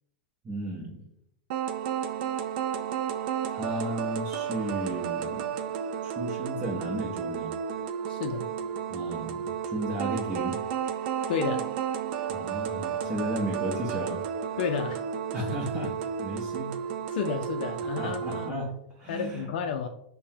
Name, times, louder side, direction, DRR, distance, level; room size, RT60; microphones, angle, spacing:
voice 1, 0.4-1.0 3.5-5.5 6.0-7.5 8.9-10.6 12.3-14.2 15.3-16.7 17.8-19.5, right 1 dB, 20° right, -3 dB, 0.6 m, -34 dB
sound 1, 1.5-18.5, right 8 dB, 60° right, 0.4 m, -32 dB
voice 2, 8.1-8.4 11.3-11.6 14.6-15.0 17.1-18.6 19.1-19.9, left 7 dB, 70° left, 5 dB, 0.3 m, -31 dB
5.4 x 2.1 x 2.7 m, 0.77 s
supercardioid pair, 145°, 5 cm